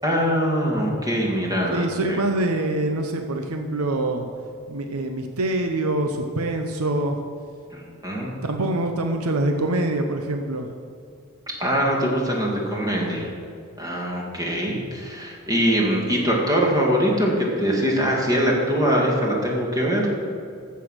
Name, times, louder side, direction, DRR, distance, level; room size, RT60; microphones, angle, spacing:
voice 1, 0.0-2.2 7.7-8.3 11.6-13.3 13.8-20.1, equal, 20° right, -2 dB, 2.1 m, -23 dB
voice 2, 1.7-4.2 4.7-7.2 8.4-10.7, right 2 dB, 90° right, 4 dB, 0.8 m, -25 dB
14.0 x 5.7 x 6.3 m, 2.4 s
head